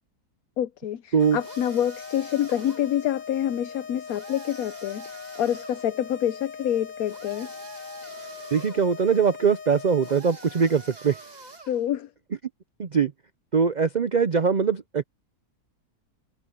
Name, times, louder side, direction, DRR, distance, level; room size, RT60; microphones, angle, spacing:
voice 1, 0.6-7.5 11.7-12.1, left 11 dB, 70° left, 1.1 m, -27 dB
sound 1, 1.2-10.2, left 6 dB, 50° left, 2.5 m, -41 dB
sound 2, 1.4-3.0 4.1-5.9 7.1-8.9 10.0-11.9, right 2 dB, 25° right, 2.0 m, -45 dB
voice 2, 8.5-11.2 12.8-13.1 13.5-15.0, right 6 dB, 75° right, 0.4 m, -22 dB
omnidirectional pair, 1.7 m